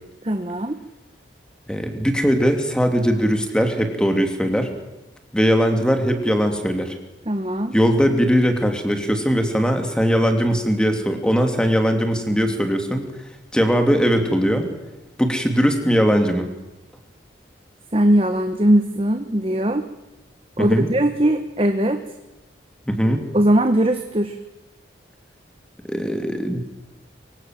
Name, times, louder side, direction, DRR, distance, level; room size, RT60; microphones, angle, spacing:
voice 1, 0.2-0.8 7.3-7.7 17.9-19.9 20.6-22.0 23.3-24.3, right 1 dB, 30° right, 7 dB, 1.2 m, -20 dB
voice 2, 1.7-4.7 5.3-7.0 7.7-13.0 13.5-14.7 15.2-16.5 20.6-20.9 22.9-23.2 25.8-26.6, equal, 5° left, 5 dB, 2.8 m, -20 dB
24.0 x 24.0 x 7.6 m, 1.0 s
head